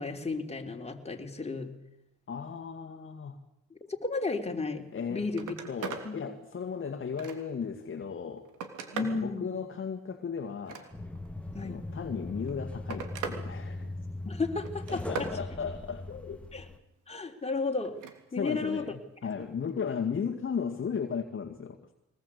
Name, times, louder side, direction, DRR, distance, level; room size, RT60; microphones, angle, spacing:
voice 1, 0.0-1.7 3.7-5.6 6.0-6.2 8.9-9.6 11.5-11.9 14.2-15.3 16.5-16.7 17.1-18.0 18.3-19.0 19.4-19.5, left 3 dB, 20° left, 3 dB, 3.4 m, -33 dB
voice 2, 2.3-3.4 4.9-5.3 5.7-8.5 9.0-10.9 11.6-13.8 14.9-16.5 18.4-21.8, left 6 dB, 40° left, 5 dB, 2.0 m, -35 dB
Telephone, 4.9-5.0 5.3-6.1 6.6-7.7 8.2-9.2 10.5-11.3 12.3-13.4 13.8-14.2 14.6-15.4 17.8-18.2 19.6-19.7, right 6 dB, 85° right, 3.3 m, -40 dB
sound 1, 10.9-16.8, left 2 dB, 5° left, 1.8 m, -39 dB
23.5 x 19.5 x 8.4 m, 0.81 s
cardioid pair, 90°, 30 cm